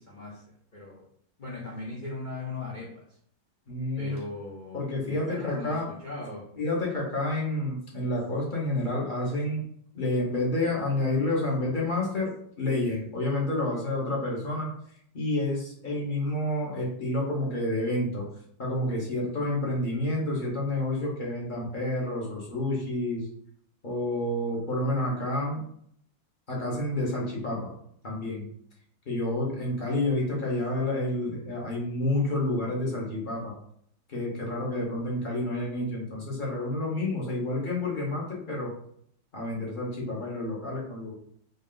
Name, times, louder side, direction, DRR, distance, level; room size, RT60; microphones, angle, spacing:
voice 1, 0.1-0.4 0.7-1.0 1.4-3.2 4.0-6.4, left 2 dB, 65° left, -5 dB, 0.4 m, -38 dB
voice 2, 3.7-4.1 4.7-5.9 6.6-9.6 9.9-14.7 15.1-18.3 18.6-23.3 23.8-25.6 26.5-27.7 28.0-28.5 29.1-33.5 34.1-38.7 39.3-41.1, left 1 dB, 35° left, -3 dB, 0.9 m, -29 dB
3.3 x 2.6 x 3.8 m, 0.65 s
omnidirectional pair, 2.0 m